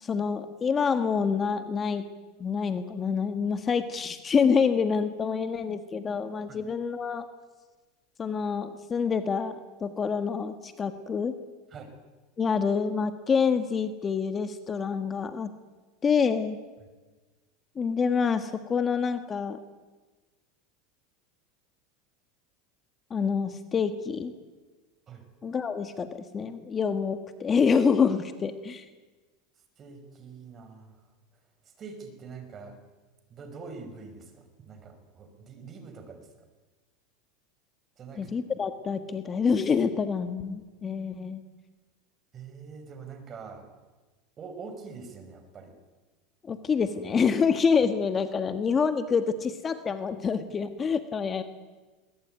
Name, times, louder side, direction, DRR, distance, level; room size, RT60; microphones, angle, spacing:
voice 1, 0.0-2.1 2.4-7.3 8.2-11.3 12.4-15.5 16.0-16.6 17.7-19.6 23.1-24.3 25.4-28.8 38.1-41.4 46.4-51.4, left 6 dB, 25° left, 9 dB, 1.6 m, -27 dB
voice 2, 29.8-31.0 31.8-32.8 33.3-36.3 38.0-38.3 42.3-43.7 44.4-45.7, right 5 dB, 35° right, 8 dB, 5.5 m, -44 dB
21.5 x 20.5 x 9.3 m, 1.3 s
supercardioid pair, 110°, 0 cm